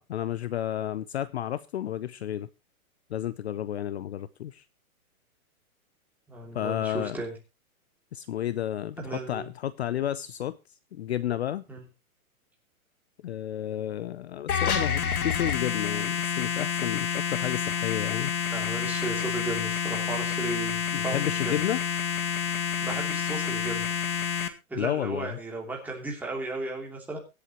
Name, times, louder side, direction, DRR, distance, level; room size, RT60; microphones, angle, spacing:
voice 1, 0.0-2.5 3.1-4.6 6.5-7.2 8.1-10.6 10.9-11.6 13.2-18.3 20.9-21.8 24.8-25.4, left 11 dB, 50° left, 0.6 m, -31 dB
voice 2, 6.3-7.3 9.0-9.5 11.7-11.8 18.5-21.6 22.8-23.8 24.7-27.2, right 2 dB, 5° right, 2.9 m, -35 dB
sound 1, 14.5-24.5, left 7 dB, 85° left, 2.2 m, -29 dB
23.5 x 8.2 x 3.0 m
hypercardioid pair, 165°, 43 cm